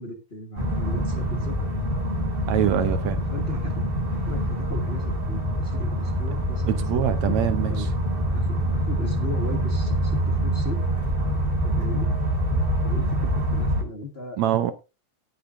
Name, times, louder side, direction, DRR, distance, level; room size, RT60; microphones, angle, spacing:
voice 1, 0.0-1.7 2.8-3.8 4.1-7.4 7.7-7.9 8.3-10.8 11.6-12.1 12.8-14.4, left 3 dB, 45° left, 0.8 m, -37 dB
sound 1, 0.6-13.8, right 1 dB, 20° right, 1.9 m, -25 dB
voice 2, 2.5-3.2 6.8-7.9 14.4-14.7, right 11 dB, 75° right, 1.8 m, -24 dB
18.5 x 6.7 x 2.6 m
omnidirectional pair, 3.6 m